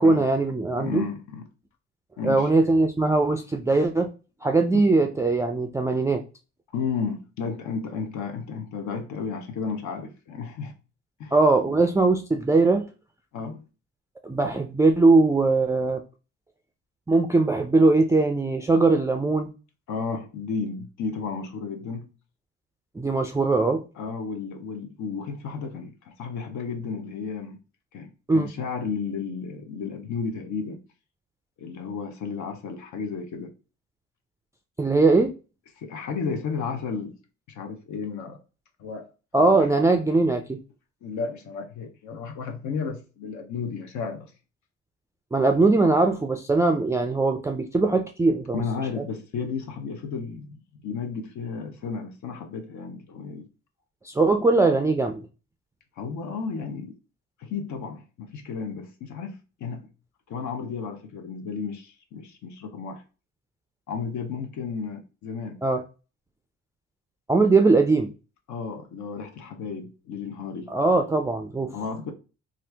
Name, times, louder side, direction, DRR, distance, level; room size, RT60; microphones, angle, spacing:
voice 1, 0.0-1.0 2.2-4.1 4.4-6.2 11.3-12.8 14.2-16.0 17.1-19.5 23.0-23.8 28.3-28.5 34.8-35.3 39.3-40.6 45.3-48.6 54.0-55.3 65.6-65.8 67.3-68.1 70.7-71.7, right 3 dB, 10° right, 0.3 m, -20 dB
voice 2, 0.7-1.5 2.2-2.5 4.7-4.8 6.7-10.8 11.2-11.4 13.3-13.6 19.9-22.1 24.0-27.6 27.9-30.8 31.6-33.5 35.8-37.2 37.5-38.4 38.8-39.7 41.0-44.3 48.5-53.5 56.0-57.0 57.4-59.9 60.3-63.0 63.9-65.6 68.5-70.7 71.7-72.1, left 5 dB, 70° left, 0.7 m, -33 dB
2.8 x 2.4 x 3.3 m
cardioid pair, 90°, 30 cm